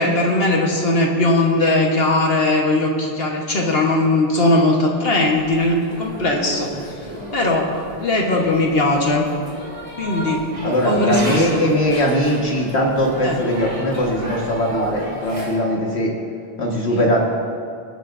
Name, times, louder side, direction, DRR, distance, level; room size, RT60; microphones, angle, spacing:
voice 1, 0.0-6.7 7.3-7.7 8.0-9.3 10.0-11.7 13.2-13.4 16.9-17.1, left 2 dB, 65° left, 0 dB, 1.5 m, -19 dB
sound 1, 5.2-15.6, equal, 30° right, 1.9 m, -34 dB
voice 2, 10.6-16.1 16.6-17.2, equal, 90° left, -1 dB, 2.0 m, -20 dB
21.5 x 9.2 x 2.7 m, 2.4 s
omnidirectional pair, 1.1 m